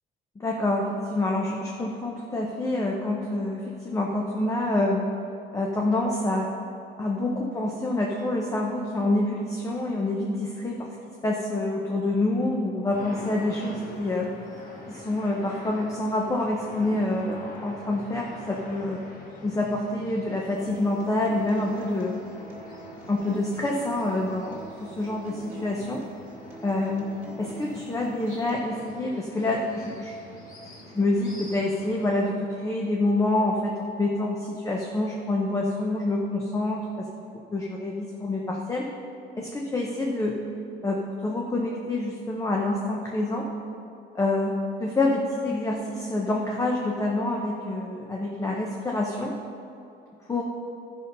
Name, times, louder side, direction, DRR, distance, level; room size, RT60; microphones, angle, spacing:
voice 1, 0.4-5.0 5.5-6.5 7.0-10.9 11.2-14.3 14.9-19.0 19.4-22.2 23.1-26.0 26.6-27.1 27.4-30.2 30.9-37.1 37.5-38.9 39.4-40.4 40.8-43.5 44.1-49.3 50.3-50.4, left 2 dB, 15° left, -1 dB, 0.8 m, -27 dB
sound 1, 12.9-32.3, left 2 dB, 45° left, 1.6 m, -45 dB
Acoustic guitar, 20.5-28.5, right 2 dB, 15° right, 2.5 m, -45 dB
12.5 x 5.4 x 5.4 m, 2.7 s
cardioid pair, 140°, 19 cm